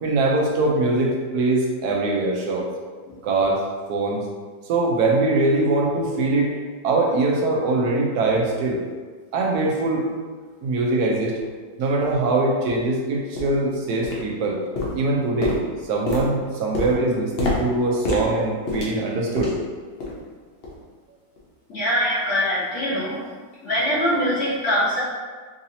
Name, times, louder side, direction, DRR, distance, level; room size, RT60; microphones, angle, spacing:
voice 1, 0.0-2.7 3.2-3.6 3.9-4.2 4.7-6.6 6.8-8.8 9.3-10.1 10.6-11.4 11.8-14.6 14.9-15.6 15.9-19.5, right 2 dB, 70° right, -2 dB, 1.1 m, -22 dB
sound 1, 11.4-11.5 12.0-12.1 12.7-12.8 13.4-13.7 14.0-14.5 14.8-19.7 20.0-20.3 20.6-20.8 21.4-21.5, left 2 dB, 70° left, 0.5 m, -29 dB
voice 2, 21.7-23.2 23.6-25.0, equal, 50° left, -7 dB, 1.1 m, -23 dB
3.8 x 2.7 x 2.7 m, 1.5 s
omnidirectional pair, 1.9 m